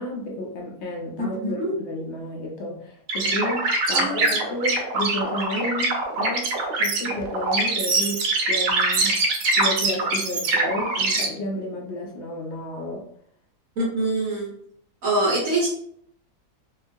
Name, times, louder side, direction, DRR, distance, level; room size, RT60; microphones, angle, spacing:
voice 1, 0.0-9.2 9.6-13.0, left 1 dB, 65° left, 0 dB, 0.7 m, -31 dB
voice 2, 1.2-1.7 3.9-4.2 13.8-14.5 15.0-15.7, right 2 dB, 60° right, -5 dB, 1.1 m, -24 dB
sound 1, 3.1-11.3, right 3 dB, 85° right, 1.2 m, -23 dB
2.9 x 2.3 x 2.5 m, 0.66 s
omnidirectional pair, 1.7 m